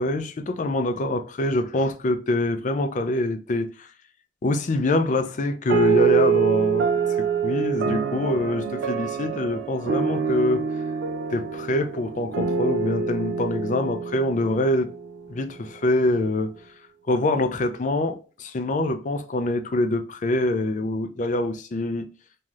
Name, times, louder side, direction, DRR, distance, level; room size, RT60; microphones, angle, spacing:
voice 1, 0.0-3.9 4.4-6.9 7.4-10.8 11.3-14.9 15.3-16.5 17.1-22.0, left 2 dB, 40° left, 0.4 m, -25 dB
sound 1, 5.7-15.4, right 6 dB, 65° right, 0.3 m, -25 dB
2.7 x 2.4 x 3.0 m
head